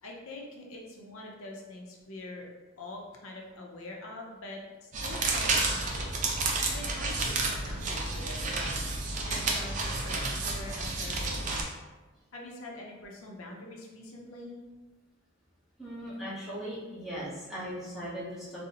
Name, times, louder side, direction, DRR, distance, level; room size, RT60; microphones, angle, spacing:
voice 1, 0.0-2.5 2.8-6.1 6.5-8.7 9.2-11.6 12.3-14.6, left 2 dB, 80° left, -1 dB, 0.5 m, -44 dB
sound 1, 4.9-11.6, right 3 dB, 35° right, 0.3 m, -31 dB
voice 2, 15.8-18.6, equal, ahead, -9 dB, 0.7 m, -38 dB
3.8 x 2.0 x 2.7 m, 1.2 s
head